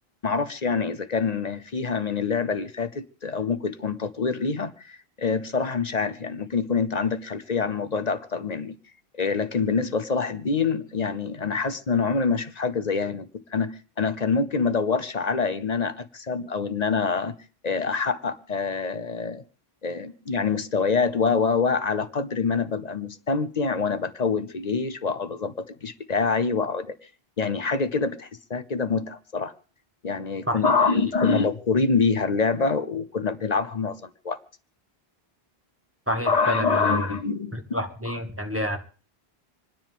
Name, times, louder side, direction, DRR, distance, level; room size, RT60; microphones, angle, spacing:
voice 1, 0.2-8.8 9.1-17.3 17.6-19.4 19.8-27.0 27.4-29.5 30.0-34.4 36.3-37.5, left 4 dB, 45° left, 0.9 m, -26 dB
voice 2, 36.1-37.1 37.5-38.8, equal, 15° right, 1.7 m, -28 dB
27.0 x 10.0 x 3.6 m
omnidirectional pair, 1.0 m